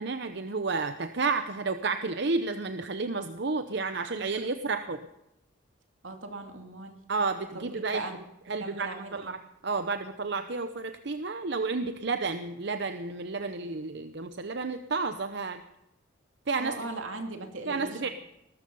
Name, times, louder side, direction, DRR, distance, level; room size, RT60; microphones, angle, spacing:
voice 1, 0.0-5.0 7.1-8.0 8.5-9.4 9.6-15.6 16.5-16.7 17.7-18.1, right 4 dB, 60° right, 9 dB, 0.8 m, -31 dB
voice 2, 6.0-7.0 7.5-8.2 8.6-9.3 16.6-18.1, right 2 dB, 80° right, 4 dB, 2.7 m, -39 dB
20.5 x 13.0 x 5.5 m, 0.90 s
head